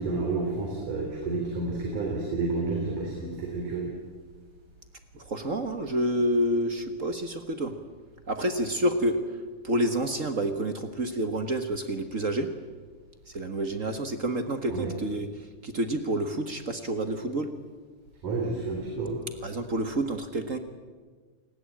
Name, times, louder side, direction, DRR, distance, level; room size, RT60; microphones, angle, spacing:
voice 1, 0.0-3.9 14.7-14.9 18.2-19.2, right 3 dB, 90° right, 0 dB, 5.2 m, -30 dB
voice 2, 5.1-7.7 8.3-9.2 9.6-12.5 13.3-15.3 15.6-17.5 19.4-20.6, right 1 dB, 45° right, 8 dB, 1.0 m, -28 dB
28.5 x 19.5 x 8.8 m, 1.4 s
omnidirectional pair, 3.5 m